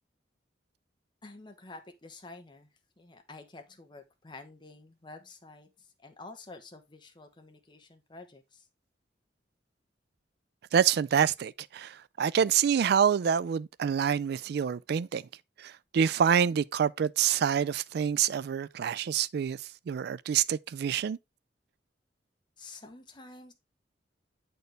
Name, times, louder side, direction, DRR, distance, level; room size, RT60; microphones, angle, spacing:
voice 1, 1.2-2.7 3.0-8.7 22.6-23.5, left 3 dB, 25° left, 1.0 m, -49 dB
voice 2, 10.7-15.2 15.6-19.6 19.9-21.2, right 8 dB, 60° right, 0.3 m, -27 dB
7.9 x 4.4 x 3.3 m
head